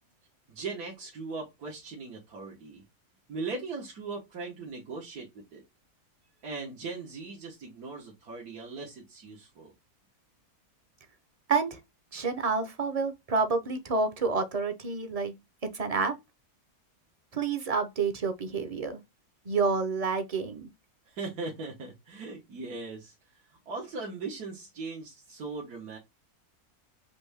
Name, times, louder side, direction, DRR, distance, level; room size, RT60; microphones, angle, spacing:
voice 1, 0.5-2.8 3.3-5.6 6.4-9.7 21.1-23.1 23.7-26.0, right 3 dB, 85° right, 1.8 m, -39 dB
voice 2, 11.5-11.8 12.1-16.2 17.3-19.0 19.4-20.7, right 4 dB, 40° right, 0.6 m, -29 dB
5.3 x 2.7 x 3.4 m
omnidirectional pair, 1.6 m